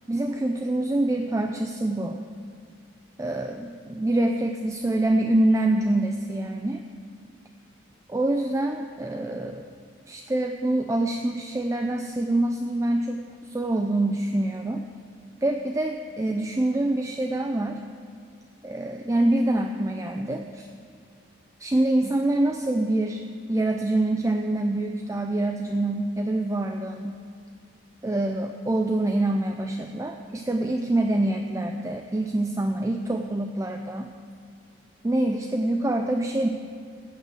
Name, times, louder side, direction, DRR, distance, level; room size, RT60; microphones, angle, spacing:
voice 1, 0.1-2.3 3.2-6.8 8.1-9.6 10.1-14.8 15.4-17.8 18.6-20.7 21.6-23.2 23.5-27.2 28.0-34.1 35.0-36.5, right 1 dB, 15° right, 4 dB, 0.4 m, -25 dB
14.5 x 5.6 x 7.5 m, 2.3 s
head